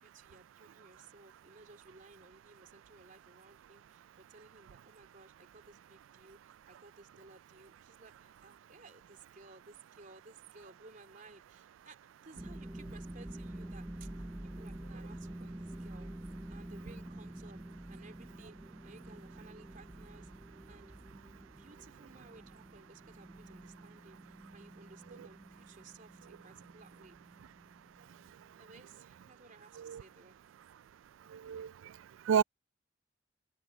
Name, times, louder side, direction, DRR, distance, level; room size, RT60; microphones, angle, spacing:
voice 1, 0.0-14.1 14.4-16.2 16.5-17.6 17.9-18.6 18.8-20.3 20.7-20.9 21.6-27.2 28.5-30.4, right 3 dB, 45° right, 3.2 m, -58 dB
sound 1, 12.4-28.9, right 1 dB, 15° right, 0.6 m, -48 dB
voice 2, 31.3-31.9 32.3-32.4, right 7 dB, 80° right, 0.3 m, -31 dB
open air
head